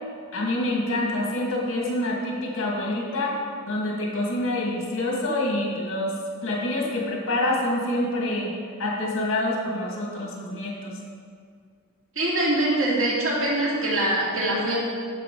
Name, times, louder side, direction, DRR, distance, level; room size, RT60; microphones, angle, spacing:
voice 1, 0.3-3.4 3.7-6.1 6.4-8.5 8.8-10.9, left 1 dB, 65° left, -2 dB, 2.0 m, -26 dB
voice 2, 12.2-14.8, right 1 dB, 65° right, -5 dB, 2.5 m, -23 dB
9.9 x 7.4 x 3.8 m, 2.1 s
head